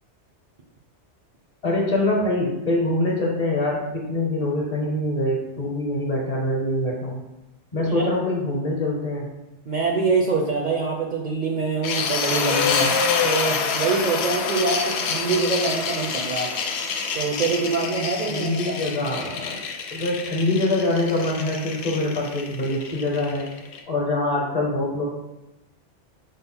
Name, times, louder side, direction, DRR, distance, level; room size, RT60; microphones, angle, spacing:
voice 1, 1.6-7.2 7.7-9.2 18.3-19.6 19.9-23.5 23.9-25.1, left 1 dB, 40° left, -2 dB, 0.8 m, -24 dB
voice 2, 9.7-16.5 17.1-18.8, right 4 dB, 55° right, -1 dB, 0.5 m, -25 dB
sound 1, 11.8-23.8, left 5 dB, 70° left, 0.8 m, -27 dB
5.1 x 2.0 x 4.2 m, 0.97 s
omnidirectional pair, 1.2 m